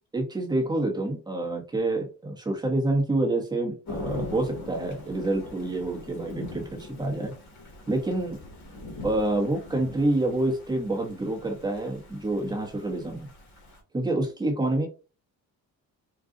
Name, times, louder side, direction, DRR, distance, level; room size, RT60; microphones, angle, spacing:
voice 1, 0.1-7.3 7.9-8.4 9.0-13.3 13.9-14.9, right 2 dB, 10° right, 1 dB, 0.9 m, -27 dB
Thunder / Rain, 3.9-13.8, left 2 dB, 55° left, 1.5 m, -42 dB
3.8 x 2.3 x 3.7 m, 0.34 s
cardioid pair, 150°, 34 cm